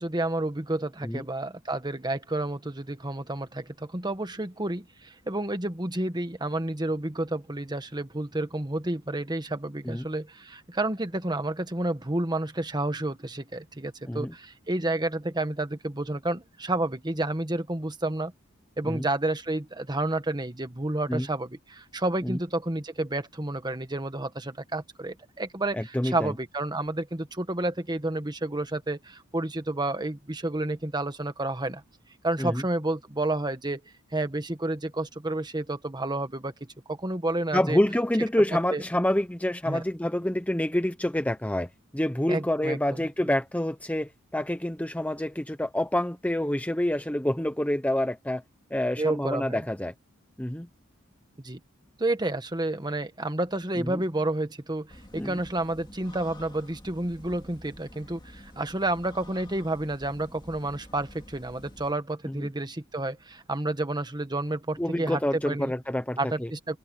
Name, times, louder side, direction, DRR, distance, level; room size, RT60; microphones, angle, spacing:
voice 1, 0.0-18.3 18.8-31.8 32.2-33.8 34.1-37.8 38.7-38.8 39.7-39.8 42.3-43.1 49.0-49.6 51.4-51.6 52.0-65.7 66.2-66.8, right 2 dB, 20° right, 1.6 m, -30 dB
voice 2, 25.7-26.3 32.4-32.6 37.5-48.4 48.7-49.9 50.4-50.7 53.7-54.0 55.2-55.4 62.2-62.5 64.8-66.5, left 1 dB, 5° left, 0.8 m, -27 dB
sound 1, 54.9-61.9, left 1 dB, 25° left, 2.5 m, -49 dB
head